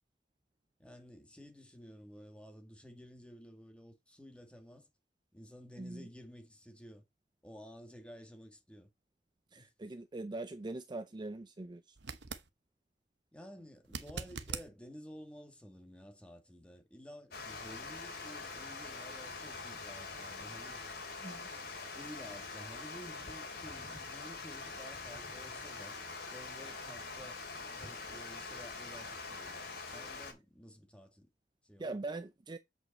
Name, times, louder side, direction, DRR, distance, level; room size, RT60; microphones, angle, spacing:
voice 1, 0.8-4.9 5.3-7.0 7.4-8.9 9.6-9.7 13.3-20.9 21.9-26.0 26.2-27.4 27.7-31.3 31.6-31.9, equal, 5° left, 1.9 m, -53 dB
voice 2, 5.8-6.1 9.5-12.0 21.2-21.5 31.8-32.6, right 2 dB, 25° right, 0.5 m, -42 dB
sound 1, 12.0-12.5 13.8-14.7 17.7-17.8, right 6 dB, 75° right, 1.0 m, -42 dB
Water, 17.3-30.3, left 3 dB, 60° left, 3.1 m, -44 dB
8.0 x 5.4 x 4.2 m
head